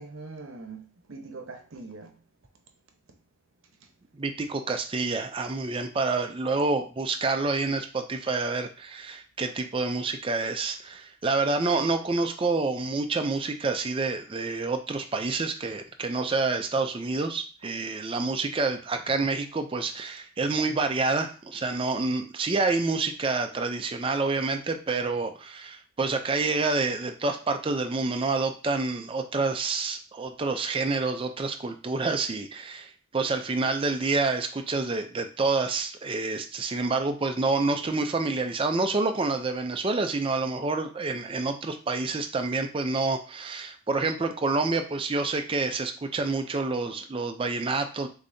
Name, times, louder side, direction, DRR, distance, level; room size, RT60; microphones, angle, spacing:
voice 1, 0.0-2.2 3.8-3.9, right 3 dB, 65° right, 0.8 m, -42 dB
voice 2, 4.1-48.1, right 3 dB, 25° right, 0.4 m, -28 dB
6.5 x 2.8 x 2.7 m
head